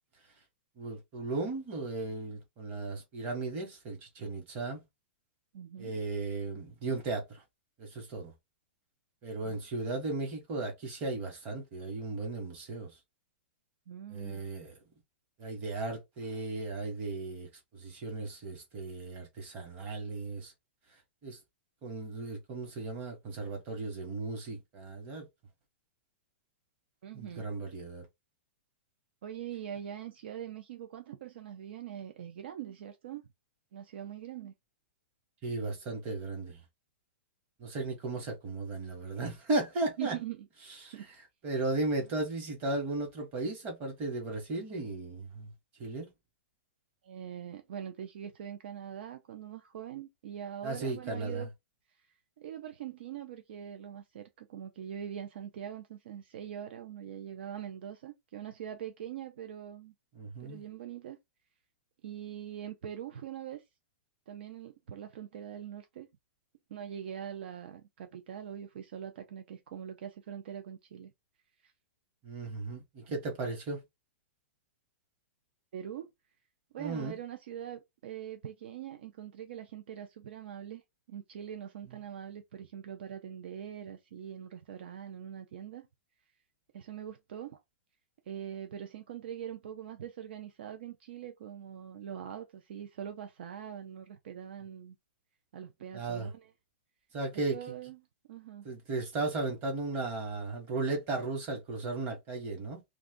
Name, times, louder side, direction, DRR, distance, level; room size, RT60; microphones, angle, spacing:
voice 1, 0.8-4.8 5.8-7.4 7.8-8.3 9.2-12.9 14.1-14.8 15.4-20.5 21.2-21.4 21.8-25.3 27.1-28.0 35.4-36.6 37.6-40.2 40.8-40.9 41.4-45.5 45.8-46.1 50.6-51.5 60.1-60.6 72.2-73.8 76.8-77.2 81.9-82.0 95.9-96.3 97.1-97.7 98.6-102.8, right 3 dB, 20° right, 1.1 m, -36 dB
voice 2, 5.5-6.0 13.9-14.4 27.0-27.5 29.2-33.2 33.7-34.5 40.0-40.5 40.9-41.1 47.0-51.5 52.4-59.9 60.4-61.2 62.0-63.6 64.3-66.1 66.7-71.1 71.6-71.7 73.1-73.2 75.7-76.1 76.7-80.8 81.1-85.9 86.7-87.6 88.3-95.0 95.5-96.5 97.5-98.0 98.3-98.7, right 9 dB, 55° right, 0.5 m, -43 dB
2.5 x 2.3 x 3.6 m
hypercardioid pair, 170°, 7 cm